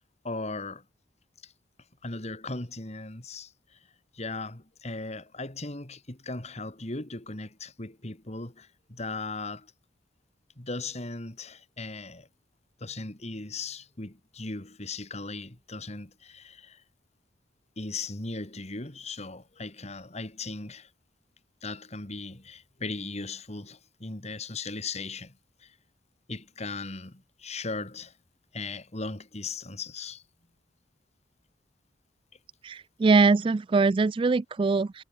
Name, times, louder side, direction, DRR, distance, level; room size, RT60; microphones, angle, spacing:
voice 1, 0.2-0.8 1.4-1.5 2.0-3.5 4.1-9.7 10.6-12.3 12.8-16.8 17.8-20.9 21.6-25.3 25.6-25.7 26.3-28.1 28.5-30.2, left 3 dB, 35° left, 2.2 m, -37 dB
voice 2, 32.6-35.0, right 4 dB, 30° right, 0.3 m, -22 dB
head